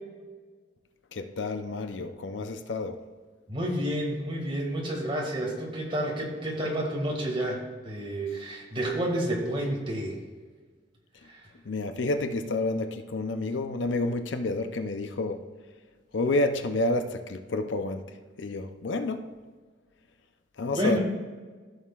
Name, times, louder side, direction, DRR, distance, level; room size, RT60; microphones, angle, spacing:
voice 1, 1.1-3.0 11.6-15.4 16.1-18.1 18.4-19.3 20.6-21.0, left 2 dB, 75° left, 0.6 m, -29 dB
voice 2, 3.5-10.2 11.2-11.5 20.7-21.0, right 1 dB, 30° right, 2.0 m, -30 dB
14.5 x 6.5 x 2.4 m
head